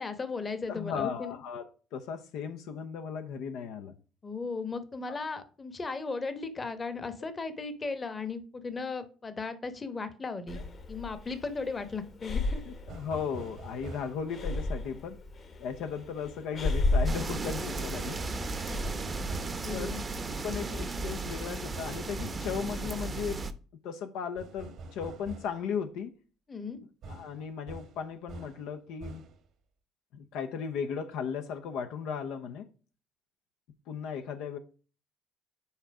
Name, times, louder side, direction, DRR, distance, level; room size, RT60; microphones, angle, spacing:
voice 1, 0.0-1.4 4.2-10.6 10.9-12.6 19.6-20.0 26.5-26.8, left 4 dB, 30° left, 1.0 m, -36 dB
voice 2, 0.7-4.0 5.1-5.2 10.5-10.6 12.7-15.2 15.6-18.2 19.7-23.5 23.8-26.1 27.1-29.2 30.1-32.7 33.9-34.6, left 7 dB, 70° left, 0.7 m, -36 dB
Breathing, 10.5-18.9, left 2 dB, 45° left, 1.3 m, -34 dB
sound 1, 12.9-14.3 17.0-19.7 21.7-22.6 24.4-25.6 27.0-28.7 29.0-29.4, right 3 dB, 60° right, 1.2 m, -45 dB
sound 2, 17.0-23.5, right 3 dB, 30° right, 0.8 m, -35 dB
5.8 x 4.3 x 4.8 m
supercardioid pair, 70°, 0 cm